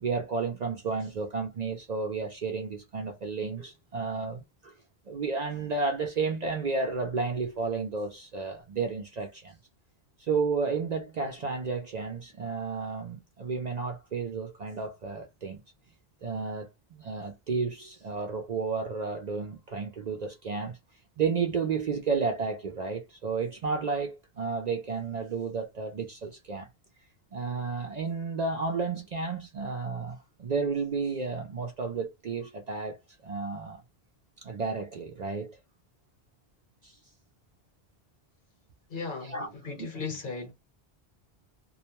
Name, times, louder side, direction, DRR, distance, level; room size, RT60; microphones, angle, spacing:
voice 1, 0.0-4.7 5.1-9.6 10.2-15.6 16.2-20.8 21.2-26.7 27.3-33.0 33.2-33.8 34.4-35.6 36.8-37.0 39.2-39.5 39.8-39.9, right 4 dB, 55° right, 0.5 m, -32 dB
voice 2, 38.9-40.5, left 4 dB, 55° left, 0.9 m, -37 dB
2.3 x 2.1 x 2.9 m
omnidirectional pair, 1.1 m